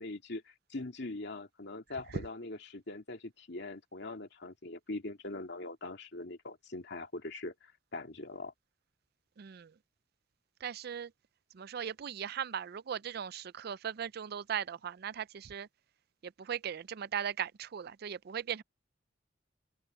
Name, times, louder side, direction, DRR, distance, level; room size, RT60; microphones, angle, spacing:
voice 1, 0.0-8.5, left 2 dB, 65° left, 2.3 m, -42 dB
voice 2, 9.4-9.7 10.6-11.1 11.5-15.7 16.2-18.6, right 8 dB, 55° right, 0.4 m, -38 dB
open air
head